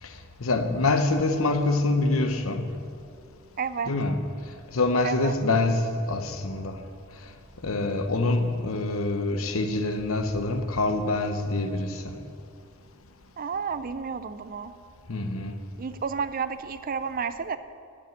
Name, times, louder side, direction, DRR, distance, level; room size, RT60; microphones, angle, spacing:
voice 1, 0.0-2.8 3.9-6.9 7.6-12.2 15.1-15.6, left 2 dB, 75° left, 7 dB, 0.9 m, -26 dB
voice 2, 3.6-3.9 5.0-5.4 13.4-14.7 15.8-17.6, right 6 dB, 45° right, 12 dB, 0.5 m, -31 dB
10.5 x 6.2 x 8.9 m, 2.4 s
head